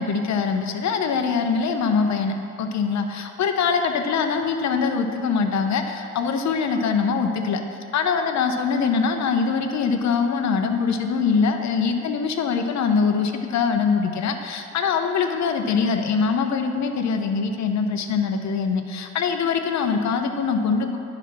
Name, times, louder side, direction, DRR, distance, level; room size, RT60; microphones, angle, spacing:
voice 1, 0.0-7.6 7.9-21.0, left 5 dB, 65° left, 6 dB, 0.8 m, -23 dB
10.0 x 4.9 x 5.9 m, 2.7 s
cardioid pair, 90°, 30 cm